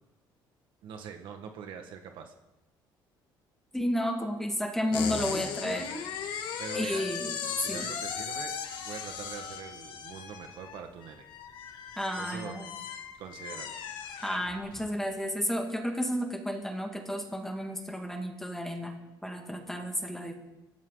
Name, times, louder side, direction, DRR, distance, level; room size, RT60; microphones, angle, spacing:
voice 1, 0.8-2.3 6.6-7.1 7.6-8.5 8.8-11.3 12.1-12.5 13.2-13.8, right 7 dB, 70° right, 5 dB, 1.7 m, -43 dB
voice 2, 3.7-5.9 6.7-7.4 7.6-7.9 12.0-12.7 14.2-18.9 19.2-20.3, equal, 5° left, 3 dB, 2.0 m, -32 dB
sound 1, 4.9-14.9, left 7 dB, 65° left, 2.3 m, -38 dB
24.5 x 13.5 x 4.0 m, 1.0 s
cardioid pair, 130°, 9 cm